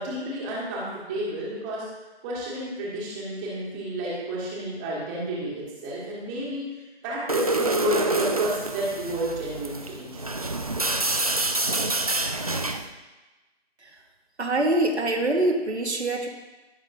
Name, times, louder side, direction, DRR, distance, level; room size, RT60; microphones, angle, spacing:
voice 1, 0.0-1.8 2.2-6.8 7.0-10.2, right 1 dB, 10° right, -6 dB, 1.6 m, -31 dB
sound 1, 7.3-12.9, right 2 dB, 35° right, 0.4 m, -27 dB
voice 2, 14.4-16.3, right 2 dB, 80° right, 2 dB, 1.3 m, -24 dB
17.0 x 5.7 x 2.7 m, 1.1 s
figure-of-eight pair, 150°, 33 cm